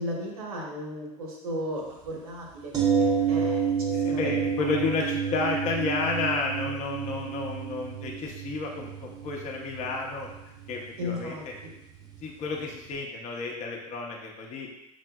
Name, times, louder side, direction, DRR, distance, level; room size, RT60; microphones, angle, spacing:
voice 1, 0.0-2.7 3.0-4.7 11.0-11.7, equal, 90° right, -1 dB, 1.0 m, -35 dB
sound 1, 2.7-12.6 12.9-13.0, right 6 dB, 20° right, 0.7 m, -30 dB
voice 2, 3.9-11.5 12.2-14.7, left 4 dB, 40° left, 0 dB, 0.7 m, -31 dB
6.0 x 2.5 x 2.2 m, 0.90 s
hypercardioid pair, 90°, 18 cm